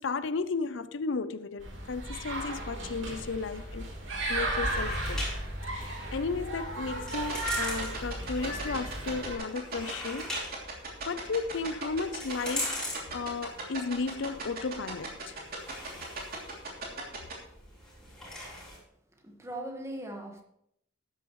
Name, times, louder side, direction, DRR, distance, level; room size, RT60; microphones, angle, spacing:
voice 1, 0.0-3.9 4.3-5.3 5.7-10.4 11.1-12.8 13.1-15.4, left 4 dB, 80° left, 0.6 m, -34 dB
sound 1, 1.6-9.4, right 1 dB, 85° right, 3.4 m, -35 dB
sound 2, 3.8-18.8, left 1 dB, 5° left, 3.9 m, -42 dB
sound 3, 7.1-17.3, right 5 dB, 50° right, 3.0 m, -37 dB
voice 2, 19.2-20.4, right 1 dB, 15° right, 1.5 m, -39 dB
13.0 x 9.7 x 3.1 m
head